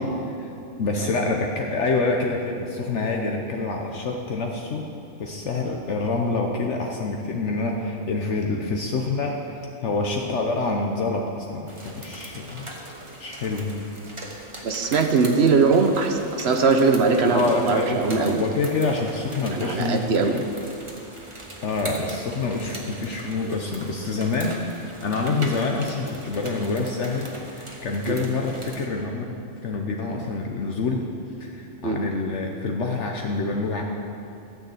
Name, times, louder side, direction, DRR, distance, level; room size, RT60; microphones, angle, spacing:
voice 1, 0.8-4.8 5.2-12.7 13.2-13.8 17.3-20.4 21.6-29.3 29.6-31.0 31.4-33.8, left 3 dB, 65° left, 1 dB, 1.1 m, -27 dB
sound 1, 11.7-28.9, right 1 dB, 25° right, 1.3 m, -41 dB
voice 2, 14.6-18.4 19.5-20.4 25.4-25.5 28.1-28.2 31.8-32.0, right 4 dB, 55° right, 5 dB, 1.0 m, -21 dB
13.5 x 6.7 x 7.8 m, 2.8 s
omnidirectional pair, 1.4 m